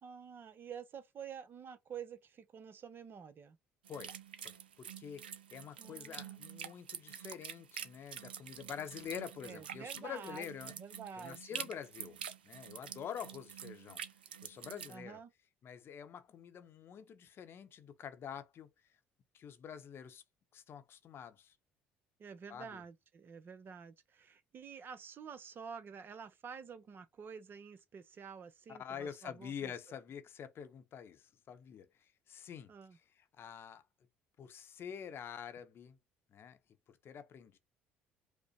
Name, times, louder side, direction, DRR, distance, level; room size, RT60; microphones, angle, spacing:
voice 1, 0.0-3.6 5.8-6.4 9.4-10.5 10.8-11.7 14.9-15.3 22.2-29.7 32.7-33.0, right 6 dB, 45° right, 0.6 m, -49 dB
sound 1, 3.8-14.9, right 9 dB, 90° right, 0.4 m, -47 dB
voice 2, 4.4-5.2 5.5-10.7 11.2-14.0 14.4-15.2 15.6-18.7 19.3-20.2 20.5-21.6 22.5-22.8 28.7-32.7 33.4-33.8 34.4-36.0 36.3-36.6 37.0-37.6, left 8 dB, 50° left, 0.7 m, -47 dB
5.1 x 2.1 x 2.8 m
hypercardioid pair, 55°, 5 cm